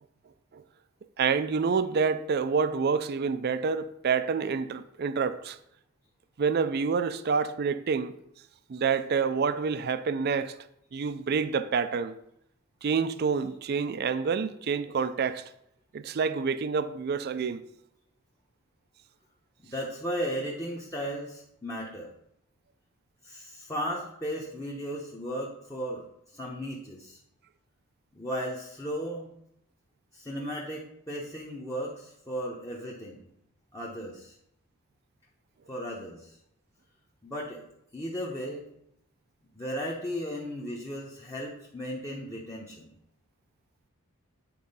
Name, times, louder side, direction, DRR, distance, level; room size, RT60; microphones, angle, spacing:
voice 1, 1.2-5.6 6.4-8.2 8.7-10.5 10.9-12.1 12.8-15.4 15.9-17.6, right 5 dB, 45° right, 0.4 m, -28 dB
voice 2, 19.6-22.1 23.2-26.0 26.3-27.2 28.1-29.3 30.1-33.3 33.7-34.3 35.7-36.4 37.2-37.6 37.9-38.7 39.5-42.9, equal, 15° left, 0.8 m, -35 dB
8.5 x 3.8 x 5.4 m
head